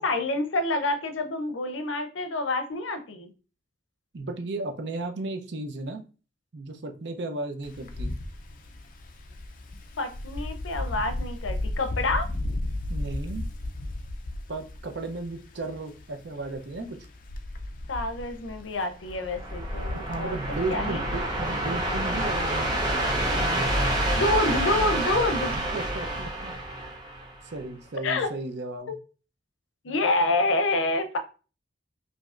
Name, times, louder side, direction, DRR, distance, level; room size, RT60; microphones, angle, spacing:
voice 1, 0.0-3.3 10.0-12.3 17.9-20.4 20.7-21.0 24.2-25.6 28.0-28.3 28.9-29.0 29.8-31.2, left 2 dB, 90° left, 0.6 m, -27 dB
voice 2, 4.1-6.0 6.5-8.1 12.9-13.5 14.5-17.0 19.9-24.1 25.5-26.5 27.5-28.9, right 2 dB, 65° right, 0.6 m, -35 dB
Wind, 7.6-20.8, left 1 dB, 45° left, 0.4 m, -35 dB
sound 1, 19.1-27.6, right 1 dB, 20° right, 0.7 m, -28 dB
5.1 x 2.7 x 2.4 m
head